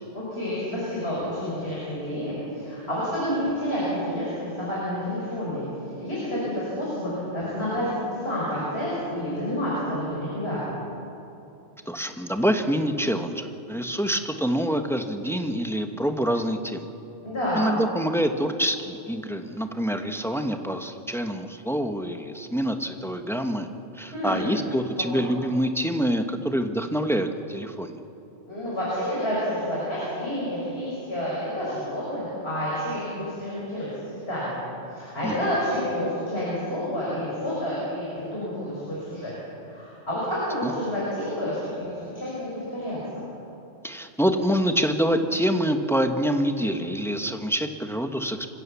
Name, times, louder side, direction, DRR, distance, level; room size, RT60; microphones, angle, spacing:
voice 1, 0.1-5.6 6.0-10.7 17.2-17.7 24.1-24.5 28.5-33.9 34.3-34.6 34.9-39.3 39.7-43.0, equal, 60° left, -8 dB, 6.4 m, -29 dB
voice 2, 11.9-16.9 17.6-23.7 23.9-28.0 35.2-35.4 40.6-40.7 43.8-48.5, equal, ahead, 6 dB, 1.2 m, -26 dB
28.0 x 16.0 x 7.1 m, 2.8 s
omnidirectional pair, 1.2 m